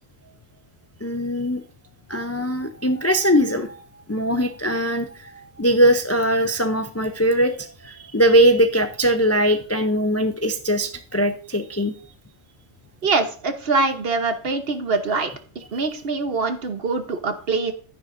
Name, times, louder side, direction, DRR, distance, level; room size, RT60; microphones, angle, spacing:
voice 1, 1.0-1.6 2.1-11.9, equal, 25° left, 7 dB, 0.3 m, -21 dB
voice 2, 13.0-15.3 15.7-17.7, right 3 dB, 50° right, 8 dB, 1.1 m, -23 dB
11.5 x 9.9 x 2.6 m, 0.43 s
omnidirectional pair, 1.3 m